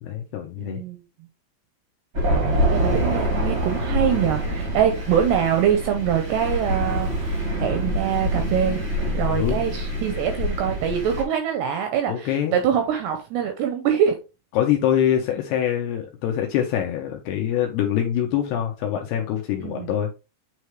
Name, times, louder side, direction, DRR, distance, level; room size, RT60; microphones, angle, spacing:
voice 1, 0.0-0.8 9.3-9.6 12.1-12.6 14.5-20.2, left 10 dB, 75° left, 2.5 m, -24 dB
voice 2, 0.6-1.0 2.3-8.8 9.1-14.1 19.6-19.9, right 9 dB, 80° right, 2.5 m, -24 dB
Thunder, 2.1-11.2, equal, 50° right, 1.0 m, -25 dB
9.0 x 3.5 x 3.1 m
omnidirectional pair, 5.5 m